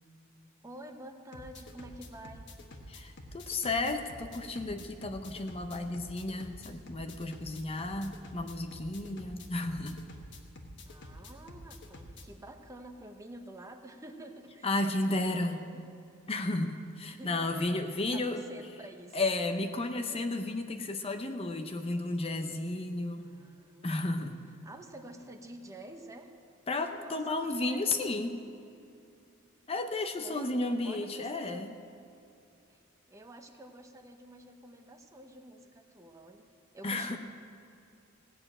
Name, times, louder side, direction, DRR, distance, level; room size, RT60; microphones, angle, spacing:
voice 1, 0.6-2.5 10.9-15.8 17.0-19.2 23.2-23.9 24.6-26.3 26.8-28.3 30.2-31.7 32.7-32.8 33.1-36.5 36.7-37.2, right 1 dB, 15° right, 5 dB, 0.8 m, -49 dB
sound 1, 1.3-12.2, left 1 dB, 60° left, 1.3 m, -48 dB
voice 2, 2.9-10.0 14.6-15.6 16.3-18.4 19.1-23.3 23.8-24.4 26.7-28.4 29.7-31.7 36.8-37.2, left 2 dB, 30° left, 6 dB, 0.7 m, -33 dB
17.5 x 6.9 x 8.8 m, 2.6 s
head